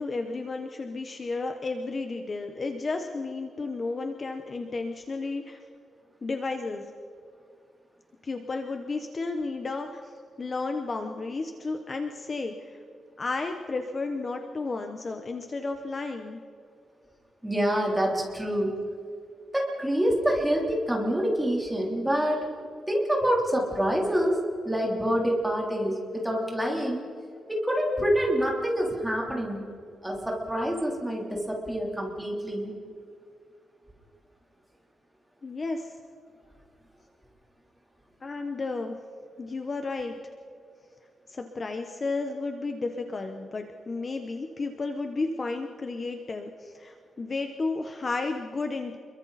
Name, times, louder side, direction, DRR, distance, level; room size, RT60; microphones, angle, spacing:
voice 1, 0.0-5.6 6.2-6.9 8.2-12.8 13.2-16.4 35.4-35.9 38.2-39.0 39.4-40.2 41.3-49.0, left 3 dB, 30° left, 5 dB, 1.0 m, -32 dB
voice 2, 17.4-18.7 19.5-22.5 22.9-24.4 24.6-27.1 27.5-29.6 30.0-32.7, equal, 5° right, -2 dB, 3.4 m, -26 dB
29.5 x 22.5 x 4.2 m, 2.3 s
wide cardioid pair, 160°, 0 cm